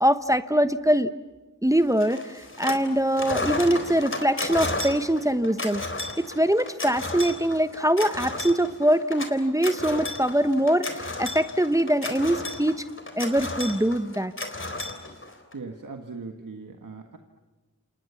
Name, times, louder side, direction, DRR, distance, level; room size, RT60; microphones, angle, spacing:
voice 1, 0.0-1.1 1.6-5.8 6.2-12.8 13.1-14.3, right 1 dB, 10° right, 11 dB, 1.0 m, -23 dB
sound 1, 2.0-2.9 3.1-15.5, left 2 dB, 40° left, 3.8 m, -33 dB
voice 2, 15.5-17.2, right 4 dB, 75° right, 4 dB, 1.7 m, -39 dB
29.5 x 27.0 x 7.1 m, 1.2 s
cardioid pair, 45°, 32 cm